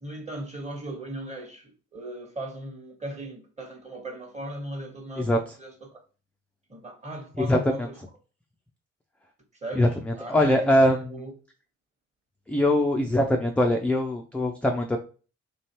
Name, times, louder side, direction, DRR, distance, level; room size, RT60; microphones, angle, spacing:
voice 1, 0.0-5.3 5.6-6.0 6.7-8.0 9.6-11.3, right 1 dB, 20° right, 1.1 m, -38 dB
voice 2, 7.4-7.9 9.7-11.2 12.5-15.0, left 1 dB, 5° left, 0.3 m, -22 dB
3.1 x 2.4 x 2.9 m
hypercardioid pair, 45°, 36 cm